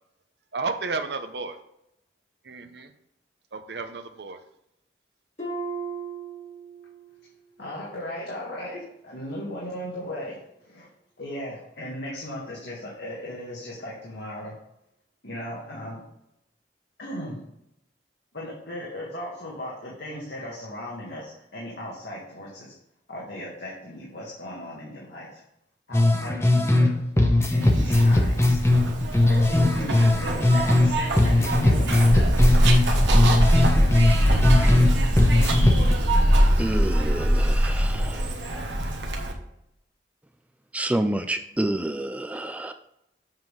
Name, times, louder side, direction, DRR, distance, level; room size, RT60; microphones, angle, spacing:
voice 1, 0.5-1.6 2.4-2.9 3.5-4.4, right 4 dB, 70° right, 7 dB, 0.7 m, -32 dB
Harp, 5.4-7.2 7.5-7.9 8.5-8.6, right 4 dB, 40° left, 2.2 m, -36 dB
voice 2, 7.6-10.9 11.2-14.5 15.2-16.0 17.0-17.4 18.3-22.7 23.1-25.4 25.9-26.7 27.5-28.6 29.3-31.0 31.2-32.1 32.4-33.1, left 1 dB, 70° left, -4 dB, 1.7 m, -37 dB
sound 1, 25.9-26.9 27.2-30.9 31.2-34.9 35.2-35.9, left 2 dB, 15° left, 0.8 m, -19 dB
Zipper (clothing), 27.6-39.3, equal, 90° right, 1.2 m, -22 dB
voice 3, 36.6-38.3 40.7-42.7, right 1 dB, 10° right, 8 dB, 0.3 m, -28 dB
7.4 x 3.7 x 6.2 m, 0.79 s
head